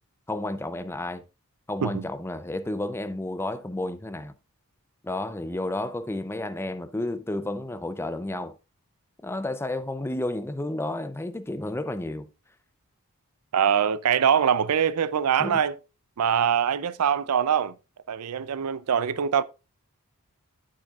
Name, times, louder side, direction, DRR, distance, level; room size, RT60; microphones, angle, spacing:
voice 1, 0.3-1.2 1.7-4.3 5.0-8.5 9.2-12.3 15.4-15.6, left 1 dB, 10° left, 0.5 m, -31 dB
voice 2, 13.5-15.8 16.2-17.8 18.1-19.4, right 8 dB, 85° right, 0.5 m, -23 dB
9.0 x 8.6 x 2.4 m
head